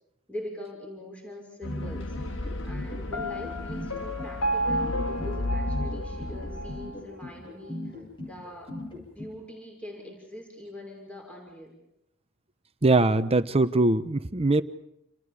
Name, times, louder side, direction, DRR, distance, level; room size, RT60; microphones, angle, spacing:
voice 1, 0.3-2.2 2.6-8.7 9.2-11.8, left 1 dB, 5° left, 1 dB, 6.2 m, -43 dB
sound 1, 1.6-6.9, left 2 dB, 60° left, 1.8 m, -34 dB
sound 2, 1.7-9.3, left 1 dB, 25° left, 7.9 m, -38 dB
Piano, 3.1-7.0, right 1 dB, 85° left, 2.2 m, -32 dB
voice 2, 12.8-14.6, right 2 dB, 30° right, 11 dB, 1.1 m, -22 dB
29.5 x 29.5 x 5.1 m, 0.79 s
head